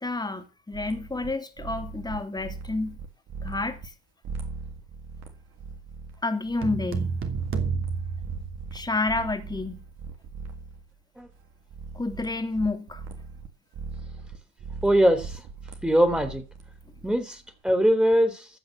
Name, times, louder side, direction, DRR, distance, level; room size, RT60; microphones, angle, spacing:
voice 1, 0.0-3.0 3.4-3.9 6.2-7.2 8.7-9.9 11.9-13.0, left 3 dB, 15° left, 2.8 m, -29 dB
sound 1, 0.7-1.3 1.6-3.9 4.2-11.0 11.2-13.5 13.7-17.5, right 4 dB, 55° right, 3.4 m, -40 dB
sound 2, 6.6-9.2, right 5 dB, 40° right, 2.9 m, -30 dB
voice 2, 14.8-15.4 15.8-16.4 17.0-18.5, equal, 5° right, 3.3 m, -22 dB
15.0 x 6.3 x 7.5 m
hypercardioid pair, 70°, 31 cm